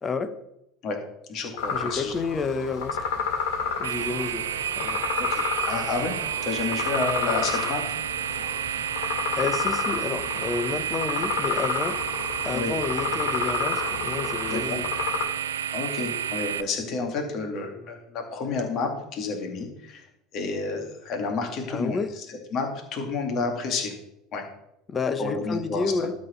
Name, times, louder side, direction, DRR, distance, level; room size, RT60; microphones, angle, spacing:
voice 1, 0.0-0.3 1.7-3.0 3.8-4.5 4.8-5.0 9.3-12.0 12.4-14.9 21.7-22.1 24.9-26.1, left 4 dB, 30° left, 12 dB, 0.8 m, -30 dB
voice 2, 1.3-2.1 5.2-6.1 6.4-7.8 12.5-12.7 14.5-14.8 15.7-23.9 24.3-24.4 25.2-26.1, left 4 dB, 45° left, 3 dB, 2.2 m, -30 dB
sound 1, 1.6-15.2, left 5 dB, 65° left, 2.3 m, -31 dB
sound 2, 3.8-16.6, right 9 dB, 80° right, 0.4 m, -30 dB
12.0 x 4.2 x 5.6 m, 0.83 s
hypercardioid pair, 75°, 0 cm